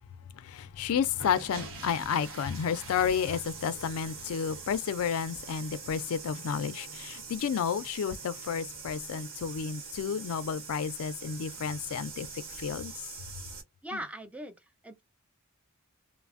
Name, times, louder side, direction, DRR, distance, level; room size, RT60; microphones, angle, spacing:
voice 1, 0.4-12.3 12.6-12.9, left 7 dB, 70° left, 0.4 m, -31 dB
sound 1, 0.7-13.6, right 4 dB, 65° right, 1.1 m, -44 dB
voice 2, 13.8-15.0, equal, 5° right, 0.5 m, -40 dB
3.1 x 2.0 x 2.4 m
head